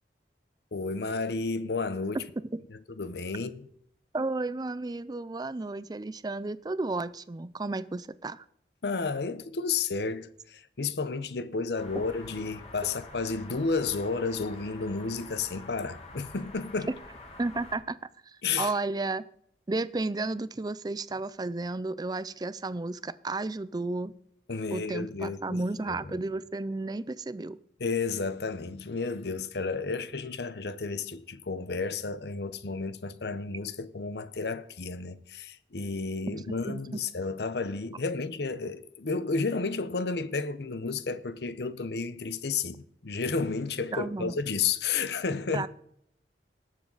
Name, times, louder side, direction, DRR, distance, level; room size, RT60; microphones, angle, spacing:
voice 1, 0.7-2.3 2.7-3.7 8.8-16.9 18.4-18.7 24.5-25.6 25.9-26.2 27.8-45.7, left 4 dB, 70° left, 0.8 m, -32 dB
voice 2, 4.1-8.4 17.4-18.0 18.3-19.2 19.7-24.1 24.7-27.6 36.3-36.4 36.7-37.0 43.9-44.3 45.5-45.7, right 3 dB, 25° right, 0.4 m, -33 dB
sound 1, 11.8-17.8, left 2 dB, 35° left, 2.8 m, -47 dB
18.5 x 7.3 x 4.0 m
head